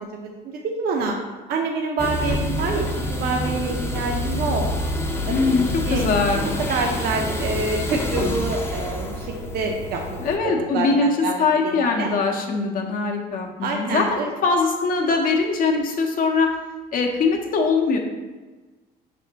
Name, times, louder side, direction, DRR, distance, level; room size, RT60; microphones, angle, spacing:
voice 1, 0.1-1.2 1.5-4.6 5.3-6.1 6.7-9.3 9.5-10.2 10.4-12.1 13.6-14.3, right 3 dB, 65° right, 1 dB, 0.6 m, -27 dB
sound 1, 2.0-10.4, left 1 dB, 15° left, 0.5 m, -27 dB
voice 2, 5.3-6.4 10.2-16.5 16.9-18.0, left 4 dB, 55° left, 2 dB, 0.7 m, -22 dB
5.1 x 3.4 x 2.8 m, 1.3 s
cardioid pair, 110°, 17 cm